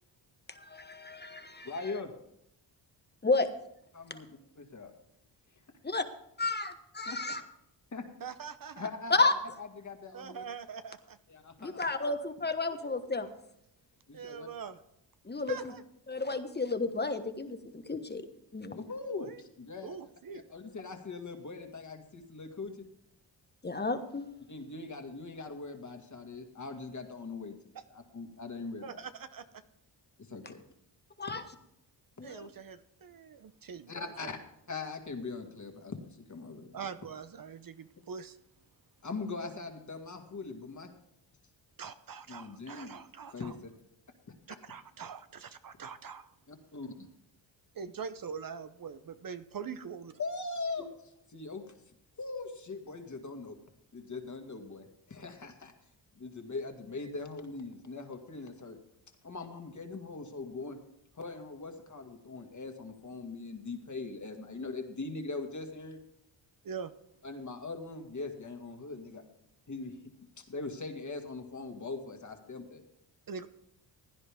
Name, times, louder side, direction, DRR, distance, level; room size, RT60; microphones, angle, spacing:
voice 1, 0.5-1.7 3.2-3.5 4.1-4.2 5.8-6.0 6.4-7.4 9.1-9.3 11.6-13.3 15.3-15.6 16.1-18.2 18.5-18.8 23.6-24.3 31.2-31.4 32.2-32.5, left 3 dB, 20° left, 9 dB, 1.2 m, -31 dB
voice 2, 1.6-2.1 3.9-4.3 4.6-4.9 7.1-7.2 7.9-8.0 8.8-9.3 9.6-10.4 11.3-11.9 14.1-14.5 18.7-19.3 19.6-19.9 20.3-22.7 24.5-27.5 27.9-29.0 30.3-30.6 31.3-31.4 33.9-34.4 34.7-36.0 36.3-36.7 39.0-40.9 42.3-43.0 43.3-43.7 46.5-47.1 50.2-51.6 52.2-53.6 53.9-55.7 56.1-58.8 59.2-60.8 61.2-66.0 67.2-69.2 69.7-70.0 70.4-72.8, left 3 dB, 40° left, 4 dB, 2.0 m, -41 dB
voice 3, 8.2-8.9 10.1-11.2 14.1-14.8 15.5-15.8 19.2-19.4 19.8-20.4 27.7-27.8 28.8-29.6 32.2-34.1 36.7-38.4 41.8-43.5 44.5-46.3 47.7-50.1 66.6-66.9 73.3-73.5, right 6 dB, 50° right, 11 dB, 0.8 m, -43 dB
16.5 x 9.9 x 3.6 m, 0.77 s
cardioid pair, 75°, 44 cm